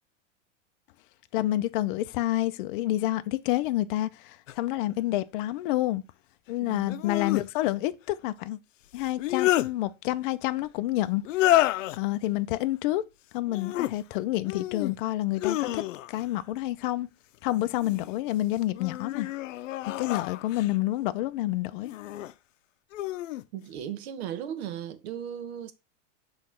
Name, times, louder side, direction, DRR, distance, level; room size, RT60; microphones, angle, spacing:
voice 1, 1.3-6.0 6.5-8.6 8.9-11.2 11.9-13.0 13.3-17.1 17.4-19.3 19.8-21.9, left 15 dB, 45° left, 0.5 m, -28 dB
sound 1, 4.5-4.6 6.9-7.5 9.0-9.7 11.2-12.0 13.5-13.9 14.4-15.0 15.4-16.3 17.5-18.1 18.7-20.7 21.8-22.3 22.9-23.4, left 15 dB, 85° left, 0.6 m, -29 dB
voice 2, 6.6-7.0 23.5-25.7, right 10 dB, 60° right, 1.0 m, -37 dB
6.3 x 3.2 x 5.7 m
supercardioid pair, 155°, 37 cm